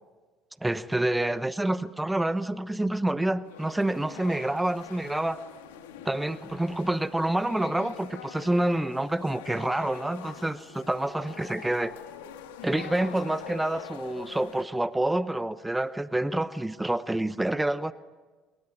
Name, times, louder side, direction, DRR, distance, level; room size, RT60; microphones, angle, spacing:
voice 1, 0.6-5.4 6.0-11.9 12.6-17.9, right 1 dB, 10° right, 0.9 m, -28 dB
sound 1, 3.4-14.6, left 9 dB, 80° left, 2.3 m, -44 dB
24.5 x 22.0 x 9.9 m
hypercardioid pair, 65°, 0 cm